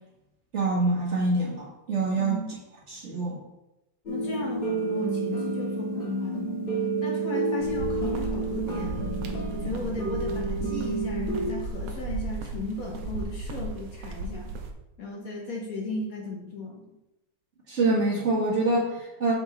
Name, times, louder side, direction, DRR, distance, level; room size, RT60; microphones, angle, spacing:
voice 1, 0.5-2.4 2.9-3.4 17.7-19.3, right 2 dB, 40° right, -4 dB, 1.6 m, -25 dB
voice 2, 2.2-2.5 4.1-6.6 7.0-9.1 9.5-14.5 15.0-16.8, left 2 dB, 60° left, 0 dB, 1.2 m, -35 dB
sound 1, 4.1-11.5, right 2 dB, 30° left, 2.0 m, -30 dB
sound 2, 7.6-14.7, right 3 dB, 85° right, 1.4 m, -35 dB
6.1 x 5.1 x 3.8 m, 0.95 s
omnidirectional pair, 2.0 m